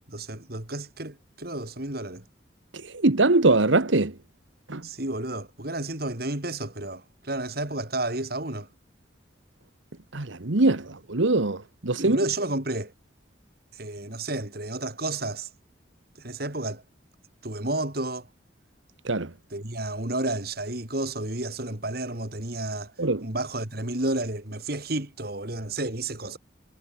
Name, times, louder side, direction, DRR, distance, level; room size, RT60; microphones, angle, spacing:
voice 1, 0.1-2.2 4.8-8.7 12.0-12.9 13.7-15.5 16.2-16.8 17.4-18.3 19.5-22.9 23.2-26.4, right 2 dB, 50° right, 3.4 m, -31 dB
voice 2, 2.9-4.1 4.7-4.8 10.1-12.2 19.0-19.3 23.0-23.2, right 2 dB, 75° right, 1.4 m, -22 dB
head